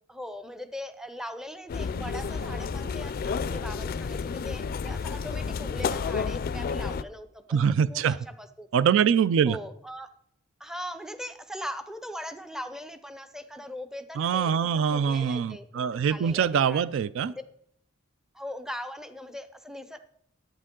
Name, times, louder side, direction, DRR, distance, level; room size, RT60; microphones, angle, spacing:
voice 1, 0.1-7.6 7.9-8.9 9.5-10.1 10.6-15.8 16.1-16.8 18.3-20.0, equal, 5° right, 9 dB, 0.6 m, -40 dB
sound 1, 1.7-7.0, left 5 dB, 45° left, 0.4 m, -31 dB
voice 2, 7.5-8.2 8.7-9.6 14.2-17.3, right 7 dB, 70° right, 18 dB, 0.3 m, -24 dB
10.0 x 8.8 x 3.7 m, 0.68 s
head